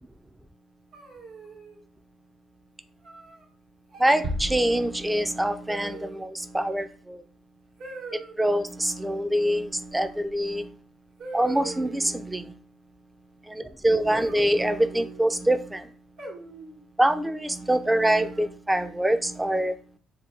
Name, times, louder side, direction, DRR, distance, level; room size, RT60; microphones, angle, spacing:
sound 1, 0.9-1.8 3.0-3.4 3.9-4.3 5.7-6.3 7.8-8.4 10.3-10.4 11.2-12.2 14.1-15.2 16.2-16.8 18.0-18.6, right 4 dB, 75° right, 1.2 m, -42 dB
voice 1, 4.0-7.2 8.4-10.7 11.3-12.5 13.5-15.8 17.0-19.7, right 1 dB, 10° right, 10 dB, 0.3 m, -25 dB
sound 2, 4.2-5.6, equal, 60° right, 0.7 m, -34 dB
2.8 x 2.2 x 3.5 m, 0.43 s
supercardioid pair, 65°, 0 cm